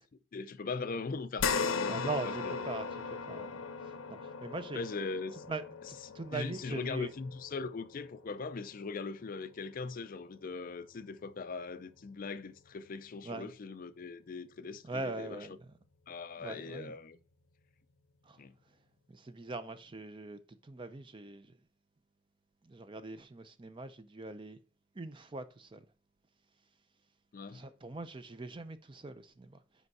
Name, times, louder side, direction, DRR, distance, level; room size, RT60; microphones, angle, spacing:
voice 1, 0.3-2.5 4.7-5.4 6.0-15.6 16.1-17.2 18.4-18.5 27.3-27.7, left 4 dB, 40° left, 0.4 m, -40 dB
sound 1, 1.4-10.0 10.4-10.6 12.0-12.1, left 5 dB, 80° left, 0.7 m, -38 dB
voice 2, 1.9-4.8 5.5-7.1 13.2-13.5 14.9-15.6 16.4-17.0 18.3-18.4 19.1-21.5 22.6-24.6 25.0-25.8 27.5-29.6, right 3 dB, 25° right, 0.5 m, -42 dB
5.3 x 5.1 x 4.7 m
head